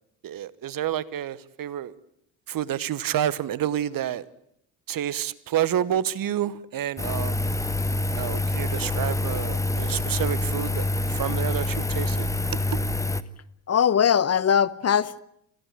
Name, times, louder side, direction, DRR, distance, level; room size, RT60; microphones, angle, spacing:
voice 1, 0.2-1.9 2.5-4.2 4.9-7.4 8.1-12.8, right 11 dB, 40° right, 1.2 m, -29 dB
Engine, 7.0-13.2, left 2 dB, 5° left, 1.2 m, -26 dB
voice 2, 13.7-15.2, left 8 dB, 30° left, 0.9 m, -21 dB
28.0 x 15.5 x 9.9 m
hypercardioid pair, 55°, 50 cm